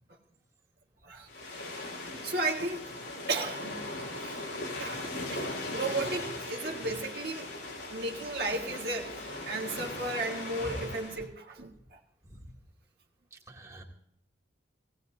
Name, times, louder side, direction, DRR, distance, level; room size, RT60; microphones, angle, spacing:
sound 1, 1.3-11.3, left 2 dB, 90° left, 4.3 m, -39 dB
voice 1, 2.0-2.8 3.3-3.8 4.2-4.5 4.8-5.4 5.7-7.5 7.9-12.0, right 2 dB, 55° right, -1 dB, 1.6 m, -34 dB
voice 2, 4.9-5.6 6.0-6.2 6.6-6.7 10.6-10.7 13.5-13.8, right 1 dB, 15° right, -2 dB, 2.4 m, -45 dB
18.5 x 17.5 x 2.7 m, 0.75 s
head